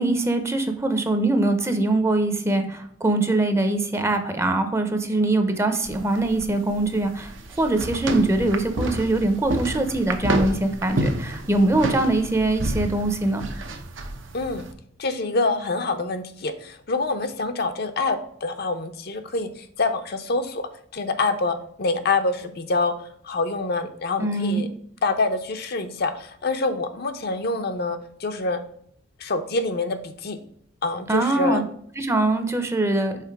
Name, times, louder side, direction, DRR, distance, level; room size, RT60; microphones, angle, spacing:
voice 1, 0.0-7.3 7.6-13.4 24.2-24.6 31.1-31.6 32.0-33.2, right 2 dB, 15° right, 7 dB, 0.6 m, -22 dB
sound 1, 5.8-14.7, right 1 dB, 75° right, 0.8 m, -29 dB
voice 2, 14.3-14.7 15.0-20.6 20.9-22.9 23.2-24.7 25.0-28.6 29.2-30.4 30.8-31.6, left 3 dB, 55° left, 8 dB, 0.6 m, -26 dB
5.8 x 3.8 x 4.6 m, 0.66 s
head